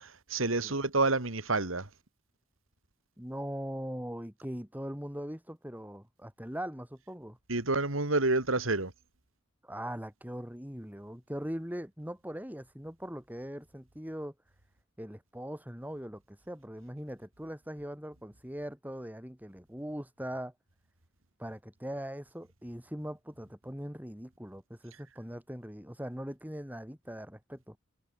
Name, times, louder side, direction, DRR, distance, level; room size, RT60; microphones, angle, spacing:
voice 1, 0.0-1.9 7.5-8.9, right 3 dB, 90° right, 3.0 m, -29 dB
voice 2, 3.2-7.4 9.6-14.3 15.0-20.5 21.4-27.8, equal, 10° right, 7.5 m, -41 dB
head